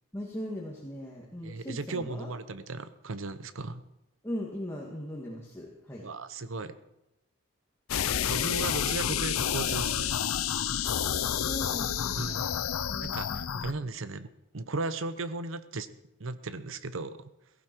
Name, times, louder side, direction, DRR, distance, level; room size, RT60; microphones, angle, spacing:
voice 1, 0.1-2.3 4.2-6.1 10.8-11.0 11.3-12.4 12.9-13.9, equal, 10° left, -4 dB, 2.0 m, -39 dB
voice 2, 1.4-3.8 6.0-6.8 8.3-10.1 10.8-10.9 12.2-12.5 13.0-15.9 16.2-17.3, right 3 dB, 65° right, 13 dB, 0.9 m, -36 dB
sound 1, 7.9-13.7, left 9 dB, 85° left, 0.6 m, -29 dB
17.0 x 15.0 x 4.5 m, 0.89 s
head